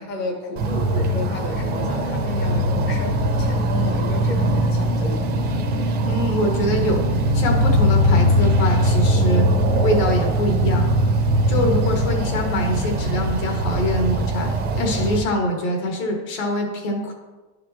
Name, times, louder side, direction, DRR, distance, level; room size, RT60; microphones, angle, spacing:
voice 1, 0.0-5.3, left 1 dB, 25° left, 1 dB, 0.7 m, -31 dB
sound 1, 0.6-15.2, equal, 25° right, 0.6 m, -21 dB
voice 2, 6.0-9.5 9.8-10.9 11.5-17.1, left 1 dB, 70° left, 1 dB, 1.9 m, -24 dB
11.5 x 5.1 x 2.9 m, 1.2 s
cardioid pair, 180°, 40 cm